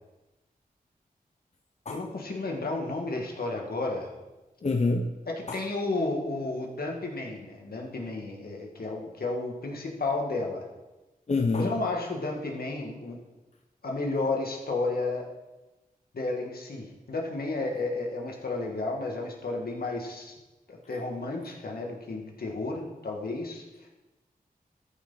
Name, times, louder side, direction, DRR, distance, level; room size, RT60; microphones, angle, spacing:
voice 1, 1.9-4.1 5.4-10.7 11.5-13.2 13.8-15.3 16.1-20.4 20.7-23.9, left 2 dB, 75° left, 0 dB, 1.9 m, -32 dB
voice 2, 4.6-5.1 5.5-5.6 11.3-11.7, left 3 dB, 45° left, 3 dB, 0.7 m, -26 dB
13.5 x 5.7 x 4.0 m, 1.1 s
wide cardioid pair, 70°, 16 cm